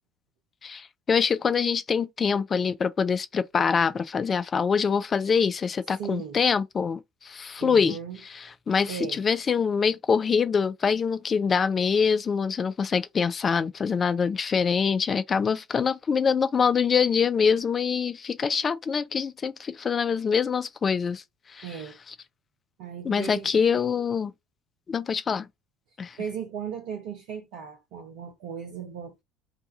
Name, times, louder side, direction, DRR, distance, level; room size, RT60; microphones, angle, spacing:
voice 1, 0.6-8.0 8.2-21.2 21.5-21.7 23.0-24.3 24.9-25.5 26.0-26.2, left 6 dB, 30° left, 0.4 m, -25 dB
voice 2, 5.9-6.4 7.6-8.2 8.9-9.2 21.6-22.0 22.8-23.9 26.2-29.2, right 7 dB, 60° right, 0.6 m, -37 dB
2.6 x 2.3 x 4.0 m
figure-of-eight pair, 65°, 0 cm